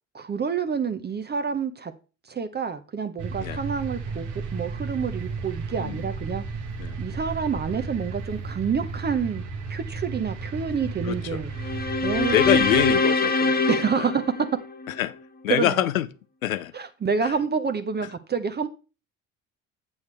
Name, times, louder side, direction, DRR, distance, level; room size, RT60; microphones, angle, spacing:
voice 1, 0.1-1.9 2.3-6.4 7.0-9.4 9.7-11.5 12.0-12.6 13.7-14.2 15.5-15.8 16.7-18.7, right 6 dB, 25° right, 0.8 m, -28 dB
sound 1, 3.2-12.9, right 4 dB, 50° right, 1.3 m, -34 dB
voice 2, 11.0-11.4 12.3-13.6 14.0-14.1 15.0-15.1 15.4-16.1 16.4-16.7, left 12 dB, 90° left, 0.5 m, -25 dB
sound 2, 11.6-15.0, left 3 dB, 25° left, 0.9 m, -23 dB
8.1 x 7.1 x 3.3 m
hypercardioid pair, 60°, 40 cm